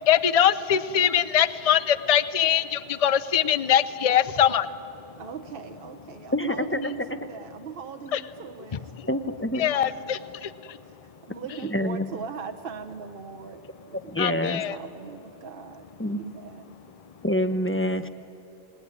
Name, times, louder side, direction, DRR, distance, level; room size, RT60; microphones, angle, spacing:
voice 1, 0.0-4.9 8.1-8.2 9.0-9.1 9.6-10.8 14.2-14.8, left 9 dB, 40° left, 15 dB, 0.7 m, -23 dB
voice 2, 5.2-8.9 9.9-10.0 11.2-13.6 13.9-15.9 16.2-16.7, right 6 dB, 55° right, 6 dB, 1.1 m, -40 dB
voice 3, 6.3-6.8 9.1-9.7 11.7-12.1 14.1-14.6 16.0-16.2 17.2-18.1, left 1 dB, 10° left, 9 dB, 0.9 m, -26 dB
28.0 x 19.0 x 9.8 m, 2.8 s
omnidirectional pair, 1.2 m